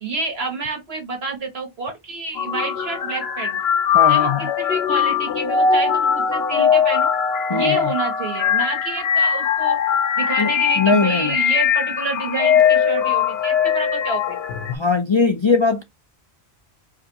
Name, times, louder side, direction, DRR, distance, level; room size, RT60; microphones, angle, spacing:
voice 1, 0.0-3.6 4.1-7.1 7.5-9.8 10.2-14.5, right 3 dB, 75° right, 1.9 m, -28 dB
sound 1, 2.4-14.8, left 7 dB, 75° left, 1.0 m, -20 dB
voice 2, 3.9-4.5 7.5-7.9 10.4-11.4 14.7-15.8, left 4 dB, 40° left, 0.4 m, -20 dB
4.9 x 2.5 x 4.1 m
omnidirectional pair, 1.1 m